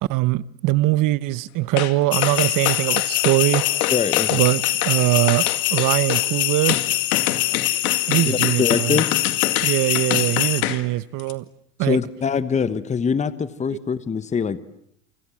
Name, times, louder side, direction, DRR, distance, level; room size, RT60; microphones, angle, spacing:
voice 1, 0.1-3.6 4.3-6.8 8.1-9.0 9.6-11.4 11.8-12.0, right 18 dB, 45° right, 1.1 m, -22 dB
sound 1, 1.8-1.9 2.2-5.0 5.3-6.3 6.7-10.8 11.2-11.3, left 15 dB, 80° left, 2.2 m, -26 dB
sound 2, 2.1-10.6, left 16 dB, 50° left, 2.2 m, -23 dB
voice 2, 3.9-4.4 8.2-9.1 11.8-14.6, left 6 dB, 15° left, 1.1 m, -23 dB
29.0 x 25.0 x 7.6 m
supercardioid pair, 120°, 43 cm